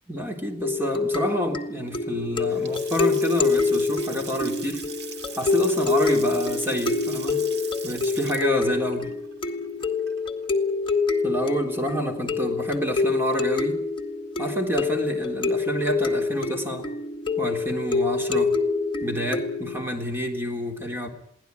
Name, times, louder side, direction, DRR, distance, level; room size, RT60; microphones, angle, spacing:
voice 1, 0.1-4.9 5.3-7.5 7.8-9.2 11.2-13.8 14.4-16.9 17.4-18.6 19.0-21.1, equal, 15° right, 3 dB, 3.6 m, -28 dB
sound 1, 0.6-19.8, left 4 dB, 30° left, 1.8 m, -26 dB
Water tap faucet / Sink (filling or washing) / Splash splatter, 2.5-10.5, right 7 dB, 65° right, 2.2 m, -41 dB
22.5 x 17.0 x 9.6 m, 0.68 s
head